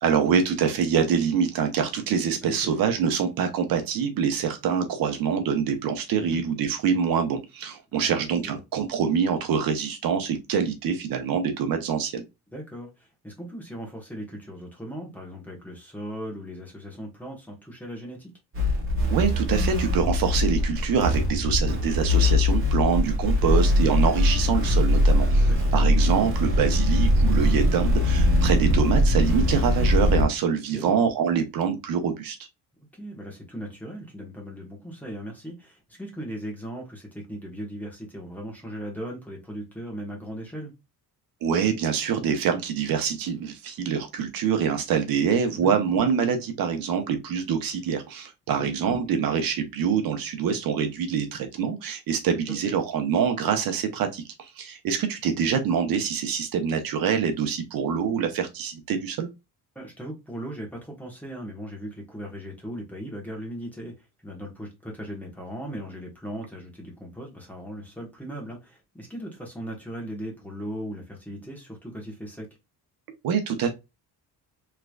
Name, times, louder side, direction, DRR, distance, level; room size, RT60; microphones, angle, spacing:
voice 1, 0.0-12.2 19.1-32.4 41.4-59.3 73.2-73.7, right 7 dB, 60° right, 0.8 m, -25 dB
voice 2, 2.4-2.7 6.2-6.4 7.9-8.2 8.4-8.6 12.5-18.3 23.4-23.6 25.1-25.7 30.7-31.0 32.9-40.7 45.5-45.7 48.6-48.7 52.5-52.6 59.7-72.5, equal, 5° left, 1.1 m, -38 dB
sound 1, 18.5-30.2, left 1 dB, 30° right, 2.0 m, -21 dB
3.7 x 3.3 x 2.3 m
cardioid pair, 155°, 40 cm